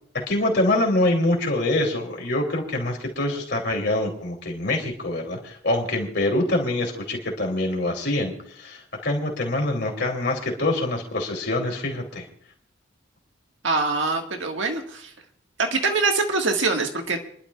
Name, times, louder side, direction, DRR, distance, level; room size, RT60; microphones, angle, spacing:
voice 1, 0.1-12.2, left 1 dB, 55° left, 1 dB, 3.2 m, -25 dB
voice 2, 13.6-15.1 15.6-17.2, right 3 dB, 70° right, 3 dB, 1.7 m, -24 dB
29.0 x 11.5 x 2.4 m, 0.62 s
head